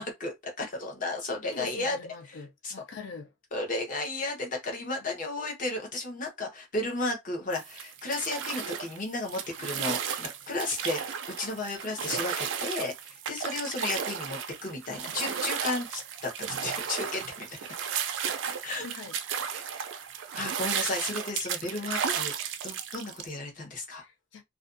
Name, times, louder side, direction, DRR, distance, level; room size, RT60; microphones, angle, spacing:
voice 1, 0.0-2.0 2.3-2.7 3.5-17.6 18.6-18.9 19.5-19.6 20.3-24.0, left 2 dB, 40° left, 0.8 m, -34 dB
voice 2, 1.5-3.3 18.8-19.2 23.9-24.4, left 4 dB, 60° left, 0.5 m, -43 dB
sound 1, 7.5-23.3, right 7 dB, 60° right, 0.3 m, -34 dB
2.4 x 2.2 x 2.5 m
head